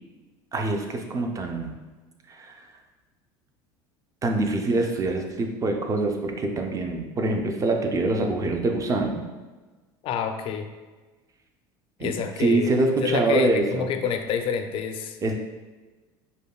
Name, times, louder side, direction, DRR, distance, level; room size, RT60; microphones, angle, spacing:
voice 1, 0.5-1.8 2.3-2.7 4.2-9.2 12.0-13.9 15.2-15.3, right 2 dB, 30° right, 4 dB, 0.5 m, -25 dB
voice 2, 10.0-10.7 12.0-12.7 13.0-15.2, left 7 dB, 50° left, 7 dB, 0.4 m, -28 dB
5.2 x 2.2 x 2.3 m, 1.3 s
supercardioid pair, 100°, 12 cm